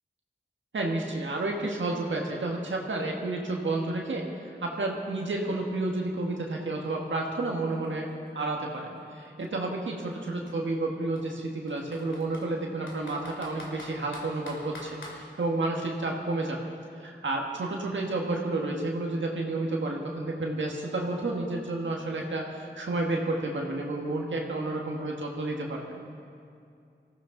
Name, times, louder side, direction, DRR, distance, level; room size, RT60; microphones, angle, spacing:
voice 1, 0.7-16.6 17.0-25.8, right 2 dB, 90° right, 0 dB, 1.4 m, -31 dB
Computer keyboard, 6.9-7.0 7.3-9.2 10.0-10.1 10.5-10.6 11.2-12.5 12.9-15.2, left 1 dB, 90° left, 2.4 m, -45 dB
19.5 x 14.5 x 3.8 m, 2.5 s
cardioid pair, 40°, 19 cm